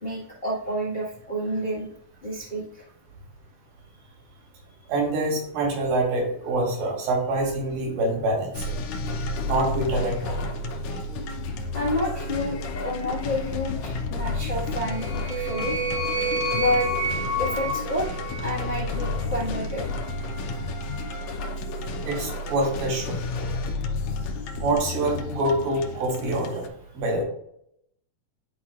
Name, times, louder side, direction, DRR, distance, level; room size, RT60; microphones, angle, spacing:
voice 1, 0.0-1.9 2.2-2.8 11.7-15.7 16.5-16.9 17.4-19.8, left 1 dB, 55° left, -8 dB, 0.6 m, -29 dB
voice 2, 4.9-8.5 9.5-10.4 10.9-11.0 22.0-23.2 24.6-26.6 27.0-27.2, right 2 dB, 80° right, -1 dB, 3.6 m, -25 dB
sound 1, 8.5-26.7, left 2 dB, 80° left, 1.6 m, -31 dB
sound 2, 14.7-19.1, right 1 dB, 60° right, 0.8 m, -29 dB
11.0 x 4.2 x 2.4 m, 0.72 s
omnidirectional pair, 4.1 m